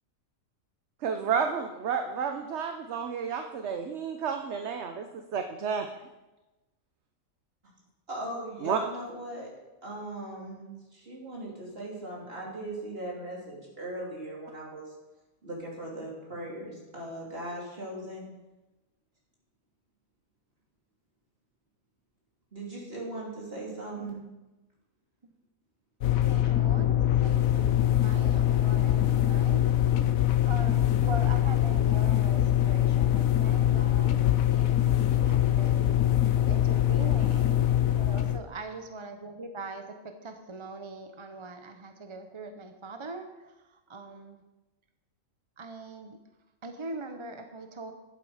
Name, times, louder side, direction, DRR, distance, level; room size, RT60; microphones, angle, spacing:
voice 1, 1.0-5.9 8.6-8.8, right 6 dB, 60° right, 6 dB, 1.0 m, -31 dB
voice 2, 8.1-9.5 9.8-14.9 15.4-18.2 22.5-24.2, right 1 dB, 45° right, -3 dB, 3.2 m, -39 dB
sound 1, 26.0-38.4, left 12 dB, 85° left, 1.1 m, -23 dB
voice 3, 26.2-29.7 30.4-35.9 36.5-44.4 45.6-46.2 46.6-47.9, right 3 dB, 30° right, 6 dB, 0.6 m, -42 dB
11.5 x 8.4 x 4.9 m, 1.0 s
omnidirectional pair, 1.4 m